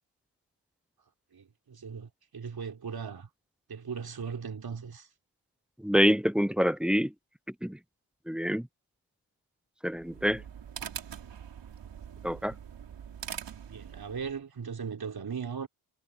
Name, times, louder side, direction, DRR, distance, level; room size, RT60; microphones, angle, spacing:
voice 1, 1.3-3.3 3.7-5.1 13.7-15.7, right 6 dB, 55° right, 4.0 m, -38 dB
voice 2, 5.8-7.1 7.6-7.8 8.3-8.7 9.8-10.4 12.2-12.5, equal, ahead, 0.6 m, -26 dB
sound 1, 9.9-14.4, right 8 dB, 75° right, 4.8 m, -43 dB
cardioid pair, 55°, 43 cm